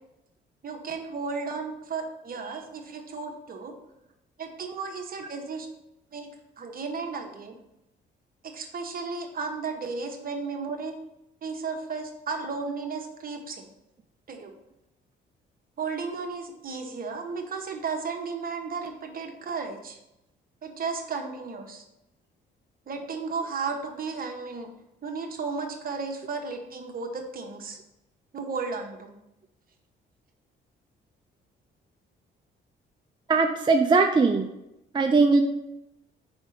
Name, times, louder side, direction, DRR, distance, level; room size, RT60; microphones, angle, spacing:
voice 1, 0.6-3.7 4.4-5.7 6.1-6.3 6.6-7.5 8.4-10.9 11.4-13.7 14.3-14.5 15.8-20.0 20.6-21.8 22.9-24.7 25.0-27.8 28.3-29.1, right 4 dB, 45° right, 3 dB, 1.1 m, -34 dB
voice 2, 33.3-34.5 34.9-35.4, right 4 dB, 25° right, 3 dB, 0.5 m, -20 dB
5.1 x 3.5 x 5.5 m, 0.87 s
cardioid pair, 90°, 20 cm